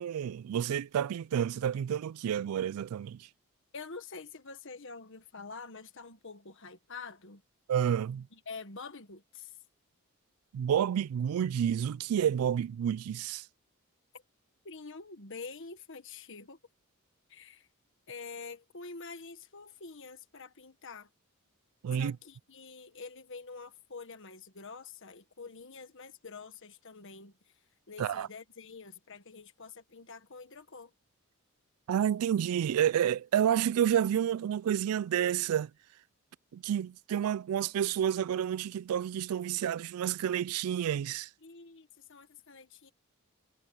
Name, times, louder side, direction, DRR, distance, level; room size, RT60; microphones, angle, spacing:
voice 1, 0.0-3.3 7.7-8.3 10.5-13.4 21.8-22.2 28.0-28.3 31.9-35.7 36.5-41.3, right 9 dB, 80° right, 0.3 m, -29 dB
voice 2, 3.7-7.4 8.3-9.6 14.6-16.6 17.3-17.7 18.1-21.1 21.9-27.5 27.9-30.9 41.4-42.9, left 4 dB, 60° left, 1.6 m, -47 dB
head